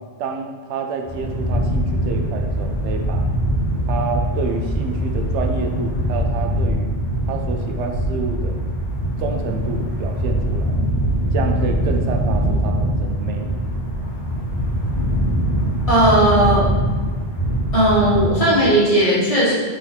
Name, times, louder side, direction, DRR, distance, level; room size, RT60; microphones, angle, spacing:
voice 1, 0.2-3.2 3.9-6.9 7.3-8.6 9.2-10.8 11.3-13.6, right 4 dB, 90° right, 4 dB, 0.9 m, -28 dB
sound 1, 1.0-18.3, equal, 45° left, 1.0 m, -22 dB
voice 2, 15.9-16.6 17.7-19.5, right 1 dB, 30° left, -8 dB, 1.3 m, -16 dB
4.2 x 3.0 x 4.0 m, 1.4 s
omnidirectional pair, 1.1 m